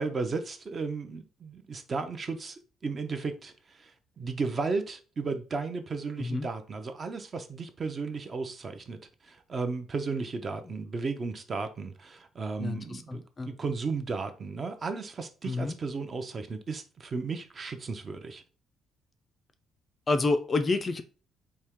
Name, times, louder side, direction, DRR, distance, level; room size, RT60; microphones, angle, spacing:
voice 1, 0.0-3.9 4.2-18.4, right 4 dB, 30° right, 0.5 m, -34 dB
voice 2, 12.6-13.5 15.4-15.8 20.1-21.0, left 3 dB, 25° left, 0.4 m, -29 dB
4.4 x 2.8 x 3.5 m
cardioid pair, 145°, 0 cm